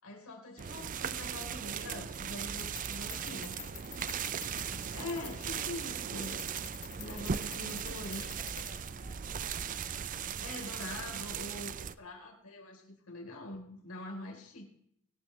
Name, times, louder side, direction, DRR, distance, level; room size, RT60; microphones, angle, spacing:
voice 1, 0.0-3.6 4.9-6.4 7.0-8.3 10.4-14.7, left 2 dB, 70° left, 1 dB, 3.9 m, -44 dB
voice 2, 0.5-1.0 3.3-4.2 5.2-5.7 7.2-11.0, left 2 dB, 35° left, -4 dB, 2.7 m, -60 dB
sound 1, 0.6-12.0, right 7 dB, 35° right, 0.4 m, -38 dB
sound 2, 2.2-9.4, left 9 dB, 50° left, 2.4 m, -50 dB
23.5 x 9.1 x 3.2 m, 0.69 s
head